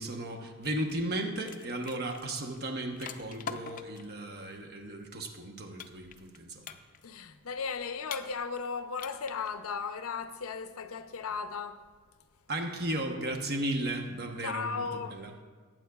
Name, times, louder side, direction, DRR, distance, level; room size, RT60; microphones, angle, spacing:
voice 1, 0.0-6.7 12.5-15.3, right 1 dB, 50° right, 1.0 m, -35 dB
sound 1, 0.9-4.1 5.8-6.4 6.6-7.2 8.1-8.7 8.9-9.5, left 7 dB, 40° left, 0.5 m, -43 dB
voice 2, 7.0-11.8 14.4-15.2, left 5 dB, 85° left, 0.6 m, -36 dB
19.5 x 8.8 x 2.3 m
head